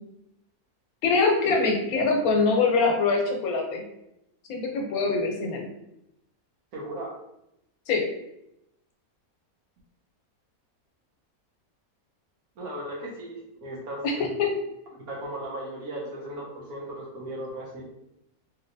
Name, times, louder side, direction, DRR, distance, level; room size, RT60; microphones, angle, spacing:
voice 1, 1.0-3.8 4.5-5.7 7.9-8.0 14.0-14.1 14.4-14.5, left 4 dB, 80° left, 2 dB, 1.1 m, -23 dB
voice 2, 6.7-7.1 12.6-14.5 15.1-17.9, right 1 dB, 80° right, -3 dB, 1.4 m, -36 dB
3.2 x 2.8 x 2.6 m, 0.83 s
omnidirectional pair, 1.5 m